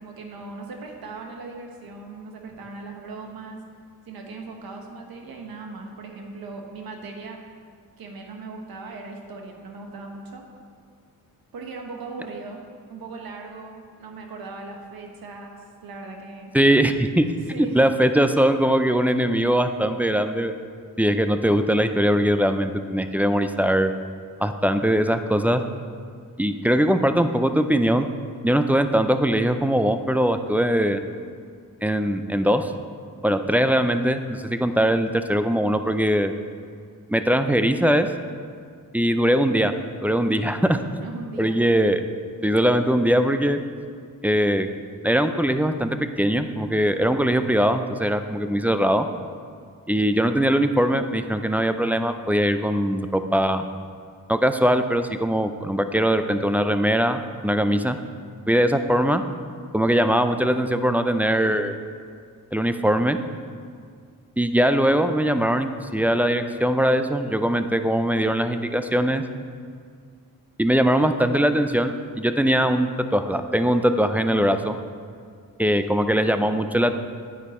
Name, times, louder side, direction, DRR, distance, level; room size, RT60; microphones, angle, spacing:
voice 1, 0.0-3.6 4.0-7.4 8.0-10.5 11.5-12.6 12.9-16.5 17.5-17.8 41.0-41.6, right 3 dB, 85° right, 2 dB, 1.3 m, -38 dB
voice 2, 16.5-17.3 17.7-20.5 21.0-23.9 24.4-25.6 26.4-28.1 28.4-31.0 31.8-32.7 33.2-36.3 37.1-38.1 38.9-39.7 40.0-40.8 41.4-42.0 42.4-43.6 44.2-44.7 45.0-49.1 49.9-53.6 54.3-58.0 58.5-59.2 59.7-61.8 62.5-63.2 64.4-69.2 70.6-74.8 75.6-77.0, equal, 5° right, 8 dB, 0.3 m, -21 dB
9.4 x 9.1 x 4.3 m, 2.1 s
wide cardioid pair, 125°, 35 cm